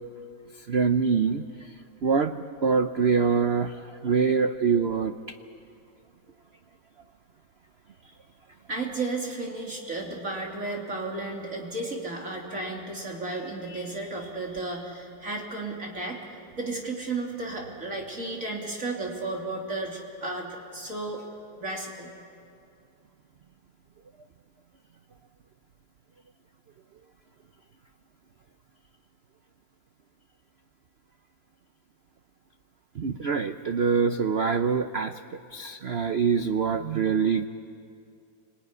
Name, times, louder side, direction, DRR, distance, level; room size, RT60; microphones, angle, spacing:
voice 1, 0.7-1.4 2.0-3.7 4.0-5.1 33.0-35.1 35.5-37.5, right 5 dB, 85° right, 8 dB, 0.5 m, -24 dB
voice 2, 8.7-16.2 16.5-21.2 21.6-22.1, right 2 dB, 40° right, -1 dB, 3.3 m, -33 dB
29.0 x 20.0 x 9.7 m, 2.5 s
omnidirectional pair, 2.1 m